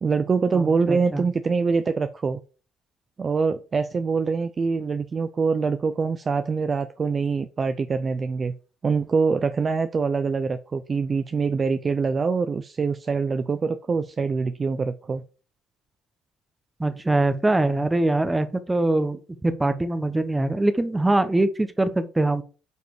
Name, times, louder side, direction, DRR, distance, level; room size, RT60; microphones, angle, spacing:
voice 1, 0.0-2.4 3.2-8.5 8.8-15.2, right 5 dB, 30° right, 0.6 m, -24 dB
voice 2, 0.5-1.3 16.8-22.4, right 2 dB, 10° right, 1.1 m, -23 dB
9.3 x 5.1 x 4.8 m
cardioid pair, 135°, 0 cm